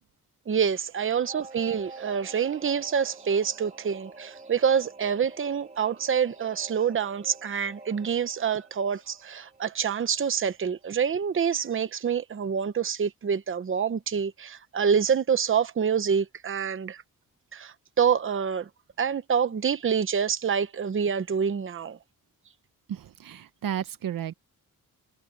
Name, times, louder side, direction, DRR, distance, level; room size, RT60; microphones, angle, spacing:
voice 1, 0.5-17.0 17.5-18.7 19.0-22.0, right 7 dB, 35° right, 0.9 m, -26 dB
Singing / Musical instrument, 1.2-11.3 11.6-11.7, right 3 dB, 20° right, 2.4 m, -48 dB
voice 2, 22.9-24.3, right 9 dB, 70° right, 0.9 m, -33 dB
wide cardioid pair, 150°, 34 cm